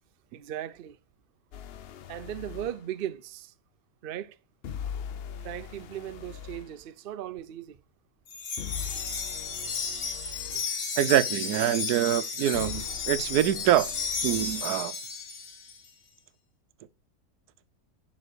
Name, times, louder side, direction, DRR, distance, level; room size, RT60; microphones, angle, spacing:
voice 1, 0.3-1.0 2.1-3.5 4.0-4.4 5.4-7.8 10.5-10.6, right 11 dB, 60° right, 0.5 m, -37 dB
sound 1, 1.5-2.8 4.6-6.7 8.6-10.7 12.5-14.7, left 8 dB, 60° left, 0.7 m, -41 dB
Wind chime, 8.3-15.8, left 5 dB, 80° left, 2.1 m, -33 dB
voice 2, 11.0-13.9 14.2-14.9, right 12 dB, 85° right, 1.2 m, -25 dB
11.0 x 4.2 x 6.7 m
omnidirectional pair, 1.6 m